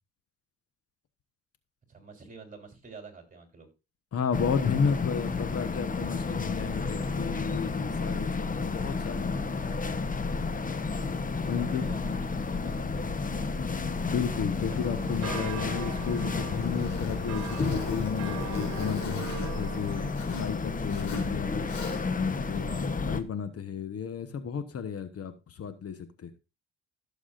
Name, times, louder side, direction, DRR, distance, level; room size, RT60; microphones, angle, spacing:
voice 1, 1.9-3.7 10.9-13.2 22.4-22.9, right 4 dB, 25° right, 3.6 m, -49 dB
voice 2, 4.1-9.3 11.4-11.8 14.1-19.3 19.6-21.7 22.1-26.3, left 7 dB, 50° left, 1.1 m, -33 dB
sound 1, 4.3-23.2, left 4 dB, 25° left, 0.9 m, -31 dB
Zipper (clothing), 14.0-20.5 20.9-21.3 21.6-22.3, left 3 dB, 75° left, 4.4 m, -42 dB
sound 2, 14.6-20.1, right 14 dB, 60° right, 0.7 m, -42 dB
15.5 x 7.2 x 2.5 m
cardioid pair, 90°, 30 cm